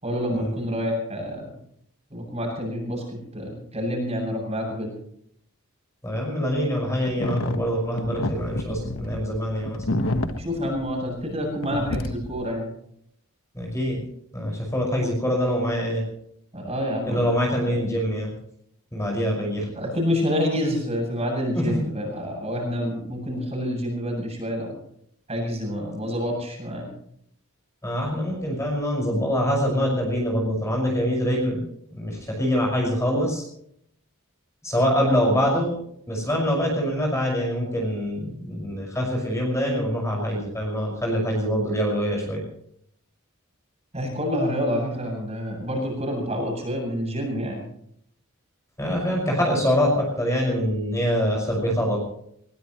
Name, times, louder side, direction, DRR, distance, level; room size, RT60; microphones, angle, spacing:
voice 1, 0.0-1.6 2.1-4.9 10.4-12.7 16.5-17.2 17.6-17.7 19.7-24.8 25.3-26.9 43.9-47.7, equal, 30° right, 0 dB, 7.9 m, -28 dB
voice 2, 6.0-9.8 13.5-14.0 14.3-16.0 17.1-18.3 18.9-19.7 21.5-21.7 27.8-31.6 31.9-33.4 34.6-35.7 36.1-42.4 48.8-52.0, equal, 15° left, -1 dB, 5.9 m, -24 dB
sound 1, 7.1-11.4 11.6-12.4, left 1 dB, 65° left, 1.5 m, -29 dB
21.5 x 21.5 x 3.2 m, 0.68 s
head